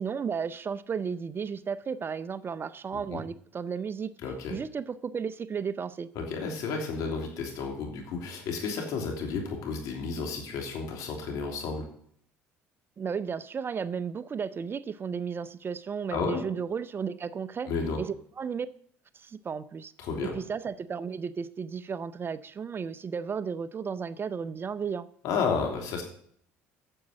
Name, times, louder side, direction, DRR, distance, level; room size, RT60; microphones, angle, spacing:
voice 1, 0.0-4.1 4.5-6.1 13.0-17.7 18.0-18.1 18.4-18.7 19.1-19.9 20.2-25.1, right 6 dB, 35° right, 16 dB, 0.6 m, -34 dB
voice 2, 4.2-4.6 6.1-11.8 16.1-16.4 17.7-18.0 20.0-20.3 25.2-26.0, left 5 dB, 70° left, 1 dB, 3.1 m, -32 dB
9.1 x 7.3 x 7.5 m, 0.63 s
hypercardioid pair, 70°, 6 cm